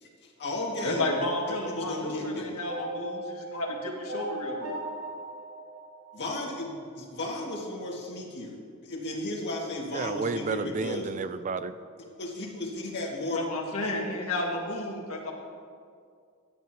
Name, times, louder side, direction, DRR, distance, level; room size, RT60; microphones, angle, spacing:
voice 1, 0.0-1.2 1.8-2.5 6.1-11.1 12.2-13.5 13.8-13.9, left 1 dB, 50° left, -2 dB, 2.0 m, -34 dB
voice 2, 0.8-4.8 13.3-15.3, left 1 dB, 70° left, 0 dB, 1.9 m, -32 dB
sound 1, 2.7-6.9, right 1 dB, 75° right, 2.3 m, -38 dB
voice 3, 9.9-11.8, right 4 dB, 35° right, 12 dB, 0.4 m, -31 dB
16.0 x 11.0 x 2.9 m, 2.2 s
head